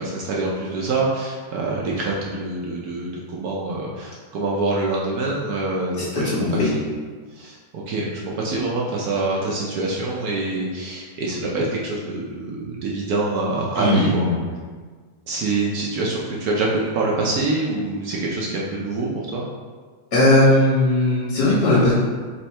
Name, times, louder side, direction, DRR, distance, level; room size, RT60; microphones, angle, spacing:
voice 1, 0.0-6.3 7.3-14.3 15.3-19.4, right 2 dB, 70° right, -3 dB, 1.0 m, -25 dB
voice 2, 6.0-6.7 13.8-14.4 20.1-21.9, left 1 dB, 70° left, -9 dB, 2.1 m, -18 dB
4.2 x 2.7 x 4.2 m, 1.5 s
omnidirectional pair, 1.9 m